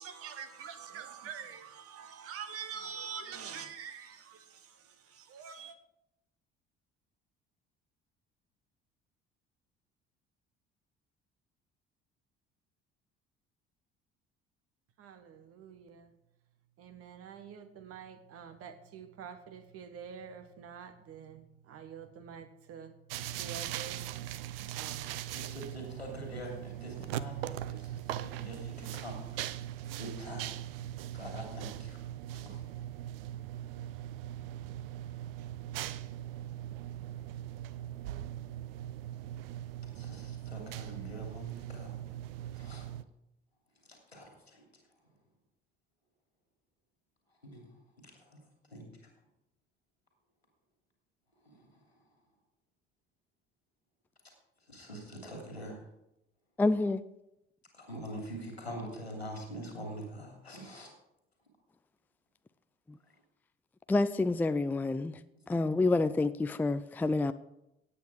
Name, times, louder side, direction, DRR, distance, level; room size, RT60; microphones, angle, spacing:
voice 1, 0.0-5.8 15.0-16.1 16.8-22.9 23.4-24.0 24.7-25.5, right 7 dB, 50° right, 1.5 m, -46 dB
sound 1, 23.1-43.0, right 12 dB, 65° right, 0.7 m, -40 dB
voice 2, 25.3-29.4 30.0-30.5 31.1-32.0 32.4-32.6 40.0-42.0 42.6-42.9 44.1-44.6 47.4-47.7 48.3-48.4 48.7-48.8 51.6-51.7 54.7-55.8 57.7-60.9 65.7-65.8, equal, 85° left, 2.9 m, -44 dB
voice 3, 56.6-57.0 63.9-65.2 65.5-67.3, left 2 dB, 5° left, 0.5 m, -28 dB
17.0 x 8.8 x 4.8 m
figure-of-eight pair, 55°, 31 cm